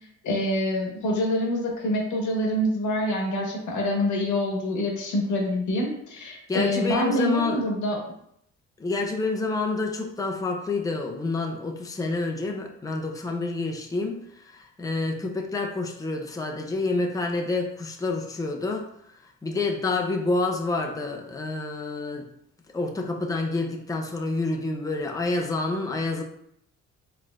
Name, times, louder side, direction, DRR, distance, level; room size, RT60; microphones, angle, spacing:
voice 1, 0.2-8.0, left 1 dB, 75° left, 0 dB, 1.2 m, -26 dB
voice 2, 6.5-7.6 8.8-22.2 22.7-26.2, left 3 dB, 10° left, 2 dB, 0.5 m, -28 dB
4.2 x 3.2 x 2.4 m, 0.73 s
cardioid pair, 90°, 30 cm